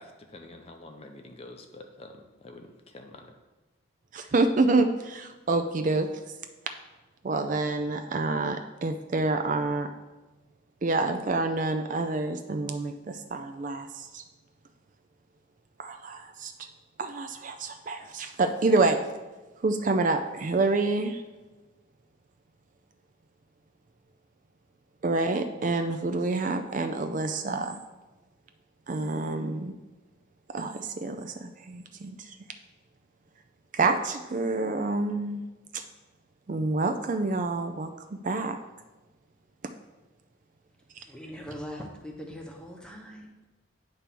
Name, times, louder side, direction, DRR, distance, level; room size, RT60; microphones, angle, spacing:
voice 1, 0.0-3.3, left 2 dB, 30° left, 5 dB, 0.6 m, -47 dB
voice 2, 4.1-6.1 7.2-9.9 10.8-14.2 15.8-16.5 17.0-19.0 19.6-21.2 25.0-27.8 28.9-29.7 30.5-32.4 33.7-35.4 35.7-35.8 36.5-38.6, right 3 dB, 40° right, 7 dB, 0.4 m, -27 dB
voice 3, 41.0-43.4, equal, 5° left, 1 dB, 0.9 m, -41 dB
9.6 x 3.4 x 5.9 m, 1.2 s
head